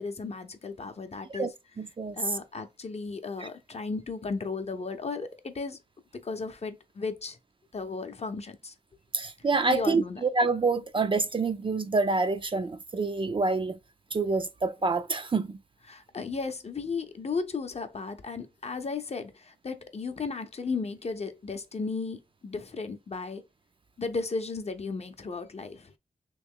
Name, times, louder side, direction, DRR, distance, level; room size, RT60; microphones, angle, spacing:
voice 1, 0.0-1.5 2.1-5.8 6.1-7.4 7.7-8.7 9.7-10.2 15.9-23.4 24.0-25.9, left 4 dB, 40° left, 0.6 m, -35 dB
voice 2, 1.8-2.2 3.4-3.5 9.1-13.8 14.1-15.6, right 3 dB, 30° right, 0.4 m, -27 dB
3.1 x 2.9 x 3.6 m
wide cardioid pair, 85°, 16 cm